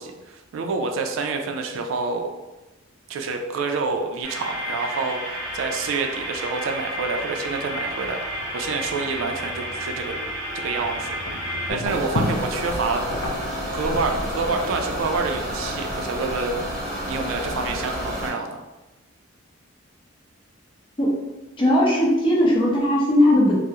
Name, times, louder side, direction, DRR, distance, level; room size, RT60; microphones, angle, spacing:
voice 1, 0.0-2.3 3.1-5.2 5.5-8.2 8.5-10.1 10.6-11.2 11.7-13.0 13.7-16.5 17.0-18.6, right 4 dB, 75° right, 4 dB, 0.3 m, -27 dB
sound 1, 4.2-11.7, equal, 45° left, 0.8 m, -31 dB
sound 2, 10.7-17.9, left 2 dB, 75° left, 0.4 m, -34 dB
sound 3, 11.9-18.3, equal, 15° right, 0.8 m, -30 dB
voice 2, 21.6-23.6, left 1 dB, 25° left, -3 dB, 0.5 m, -18 dB
2.3 x 2.0 x 2.8 m, 1.1 s
head